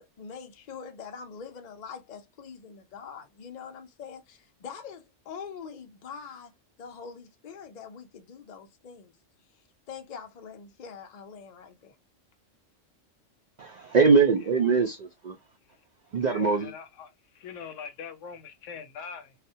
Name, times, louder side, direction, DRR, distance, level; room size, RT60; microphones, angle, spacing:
voice 1, 0.0-6.5 6.8-9.1 9.9-12.0, left 6 dB, 55° left, 0.5 m, -44 dB
voice 2, 13.6-15.4 16.1-16.7, right 5 dB, 70° right, 0.4 m, -22 dB
voice 3, 16.2-19.3, left 6 dB, 80° left, 1.0 m, -42 dB
2.4 x 2.1 x 2.6 m
omnidirectional pair, 1.3 m